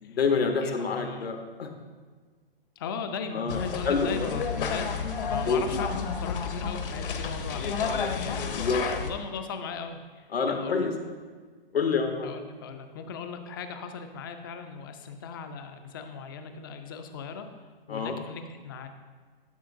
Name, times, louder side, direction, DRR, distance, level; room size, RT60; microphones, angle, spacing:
voice 1, 0.0-1.7 3.3-4.3 5.4-5.6 8.4-8.8 10.3-10.9 11.7-12.3 17.9-18.1, left 5 dB, 85° left, 5 dB, 1.1 m, -27 dB
voice 2, 0.6-1.3 2.8-8.7 9.0-10.9 12.2-17.5 17.9-18.9, left 5 dB, 25° left, 7 dB, 0.4 m, -38 dB
sound 1, 3.5-9.1, left 6 dB, 60° left, 0.9 m, -31 dB
11.5 x 5.7 x 2.6 m, 1.5 s
hypercardioid pair, 140°, 30 cm